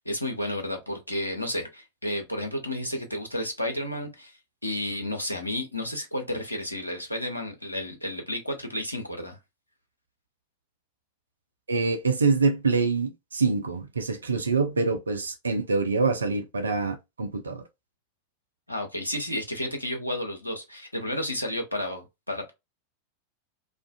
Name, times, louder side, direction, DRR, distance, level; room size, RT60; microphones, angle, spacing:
voice 1, 0.0-9.4 18.7-22.5, left 1 dB, 85° left, 0.7 m, -32 dB
voice 2, 11.7-17.6, right 4 dB, 75° right, 0.4 m, -25 dB
2.5 x 2.4 x 2.2 m
figure-of-eight pair, 90°, 0 cm